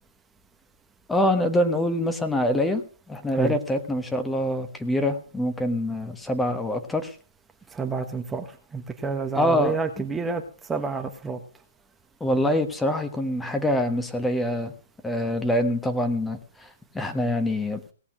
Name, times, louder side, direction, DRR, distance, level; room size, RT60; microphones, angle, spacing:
voice 1, 1.1-7.2 9.3-9.7 12.2-14.7 15.0-17.8, left 1 dB, 5° left, 7 dB, 1.4 m, -25 dB
voice 2, 7.7-8.5 8.7-11.4, right 4 dB, 10° right, 5 dB, 1.2 m, -29 dB
17.5 x 7.1 x 6.2 m, 0.41 s
hypercardioid pair, 130°, 0 cm